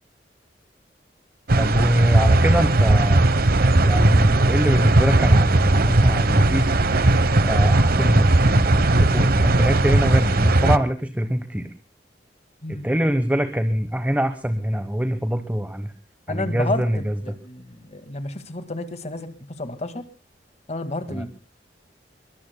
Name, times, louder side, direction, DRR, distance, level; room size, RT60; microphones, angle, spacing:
sound 1, 1.5-10.8, right 2 dB, 60° right, 1.0 m, -18 dB
voice 1, 1.6-3.2 3.8-6.7 7.4-11.7 12.7-15.9 16.3-17.2 21.1-21.3, equal, 10° right, 9 dB, 1.1 m, -23 dB
voice 2, 16.3-20.1 20.7-21.3, left 2 dB, 40° left, 10 dB, 1.8 m, -31 dB
24.5 x 22.5 x 2.2 m, 0.32 s
head